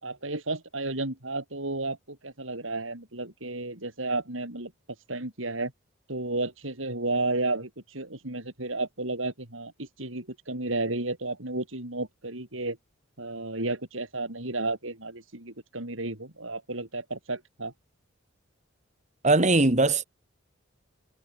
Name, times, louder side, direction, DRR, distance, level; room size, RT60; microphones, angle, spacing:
voice 1, 0.0-4.7 5.1-5.7 6.1-12.8 13.2-17.7, right 2 dB, 75° right, 5.5 m, -32 dB
voice 2, 19.2-20.0, right 2 dB, 35° right, 2.0 m, -20 dB
head